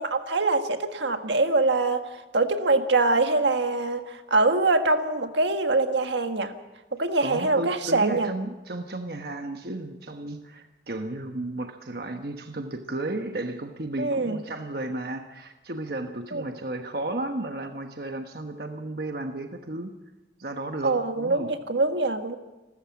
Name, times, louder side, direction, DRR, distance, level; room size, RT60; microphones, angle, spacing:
voice 1, 0.0-2.0 2.3-6.5 7.0-8.3 14.0-14.4 16.3-16.4 20.8-22.4, right 3 dB, 85° right, 6 dB, 1.6 m, -24 dB
voice 2, 7.2-19.9 20.4-21.5, right 2 dB, 55° right, 5 dB, 1.2 m, -33 dB
29.0 x 13.5 x 7.3 m, 1.1 s
head